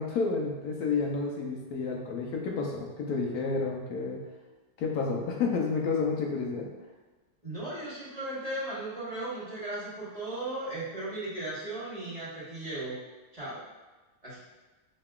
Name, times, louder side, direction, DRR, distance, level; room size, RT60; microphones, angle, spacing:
voice 1, 0.0-4.2 4.8-6.7, left 4 dB, 75° left, -1 dB, 1.1 m, -30 dB
voice 2, 7.4-13.0 13.3-13.6 14.2-14.4, right 2 dB, 25° right, -10 dB, 1.1 m, -36 dB
5.1 x 2.8 x 2.3 m, 1.2 s
omnidirectional pair, 1.7 m